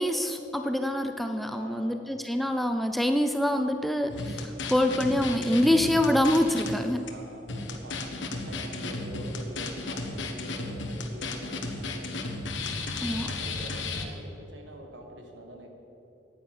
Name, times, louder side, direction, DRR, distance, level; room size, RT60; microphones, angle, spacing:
voice 1, 0.0-7.1 13.0-13.3, left 1 dB, ahead, 6 dB, 0.4 m, -26 dB
voice 2, 1.5-2.1 7.1-12.4 13.0-15.7, right 1 dB, 80° right, 3 dB, 1.7 m, -45 dB
sound 1, 4.1-6.8 7.1-7.2 7.5-14.1, left 3 dB, 85° left, 1.2 m, -34 dB
9.5 x 9.3 x 7.4 m, 2.9 s
head